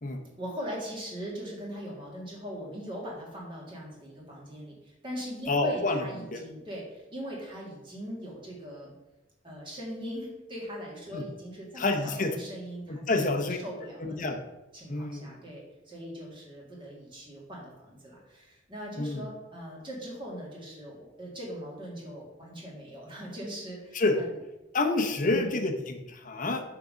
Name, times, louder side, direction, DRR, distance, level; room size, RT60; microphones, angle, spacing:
voice 1, 0.4-8.9 9.4-14.4 14.7-24.4 25.2-25.6, equal, 25° right, -3 dB, 2.1 m, -40 dB
voice 2, 5.5-6.0 6.3-6.4 11.1-11.2 11.8-12.3 12.9-13.6 14.0-14.4 14.9-15.3 19.0-19.2 23.9-24.2 24.7-26.6, left 2 dB, 40° left, 4 dB, 0.8 m, -28 dB
6.5 x 3.9 x 6.2 m, 1.0 s
head